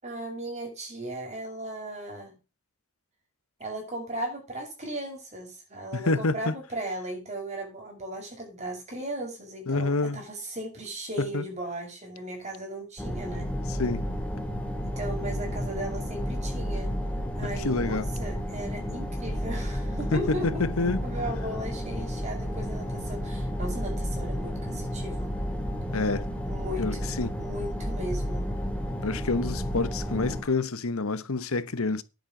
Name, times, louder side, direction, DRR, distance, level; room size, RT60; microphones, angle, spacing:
voice 1, 0.0-2.4 3.6-13.5 14.8-16.9 17.4-20.6 21.0-25.3 26.5-28.5, right 1 dB, 35° right, 7.3 m, -37 dB
voice 2, 5.9-6.5 9.7-10.2 11.2-11.4 13.8-14.1 17.4-18.1 20.1-21.1 25.9-26.3 26.8-27.3 29.0-32.0, left 3 dB, 85° left, 1.1 m, -28 dB
sound 1, 13.0-30.4, equal, 5° left, 2.3 m, -32 dB
10.5 x 8.9 x 5.9 m
head